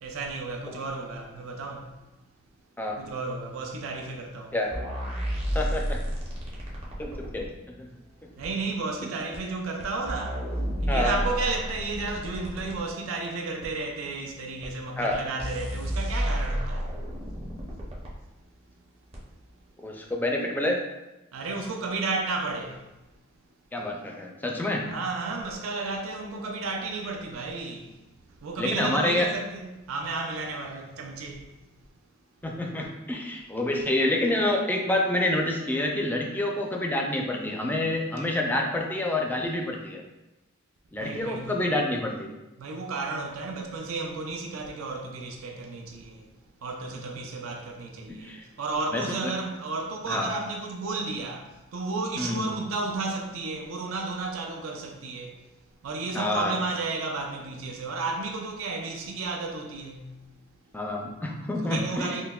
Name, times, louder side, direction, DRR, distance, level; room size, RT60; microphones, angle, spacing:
voice 1, 0.0-2.0 3.0-4.6 8.3-10.5 10.8-17.0 21.3-22.9 24.8-28.0 28.4-31.6 41.0-41.6 42.6-46.3 46.6-55.5 55.8-60.3 61.6-62.2, right 3 dB, 70° right, 0.4 m, -33 dB
sound 1, 4.7-7.4 8.4-8.5 9.3-9.4 9.8-12.8 13.6-13.7 14.6-14.7 15.1-15.2 15.4-18.1 19.1-19.2, equal, 30° right, 0.7 m, -31 dB
voice 2, 5.5-6.0 7.0-7.5 7.8-7.9 10.9-11.2 15.0-15.2 19.8-20.8 23.7-24.9 28.6-29.3 32.4-40.0 40.9-42.4 48.1-48.4 48.9-49.2 50.1-50.3 52.2-52.5 56.1-56.6 60.7-62.2, left 1 dB, 10° left, 0.4 m, -28 dB
5.5 x 2.1 x 2.3 m
head